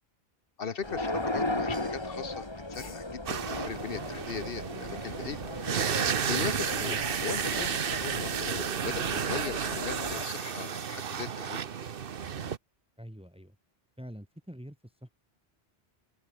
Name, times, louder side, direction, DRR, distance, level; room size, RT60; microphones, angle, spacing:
voice 1, 0.6-5.4 5.8-11.6, left 6 dB, 60° left, 1.2 m, -39 dB
sound 1, 0.8-10.3, left 2 dB, 25° left, 2.3 m, -36 dB
sound 2, 3.3-12.6, right 7 dB, 60° right, 1.1 m, -32 dB
voice 2, 13.0-13.5 14.0-14.8 15.0-15.1, equal, 5° right, 1.2 m, -45 dB
open air
omnidirectional pair, 1.1 m